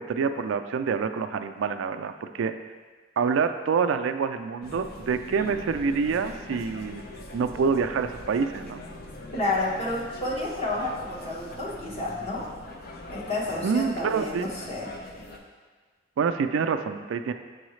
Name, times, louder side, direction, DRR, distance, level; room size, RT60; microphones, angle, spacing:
voice 1, 0.0-2.5 3.2-7.0 7.3-8.8 13.6-14.5 16.2-17.3, right 5 dB, 90° right, 8 dB, 0.3 m, -26 dB
sound 1, 4.6-15.4, left 1 dB, 55° left, 0.6 m, -42 dB
voice 2, 9.3-12.5 13.1-14.9, left 2 dB, 35° left, -4 dB, 1.1 m, -30 dB
7.0 x 4.7 x 3.1 m, 1.4 s
head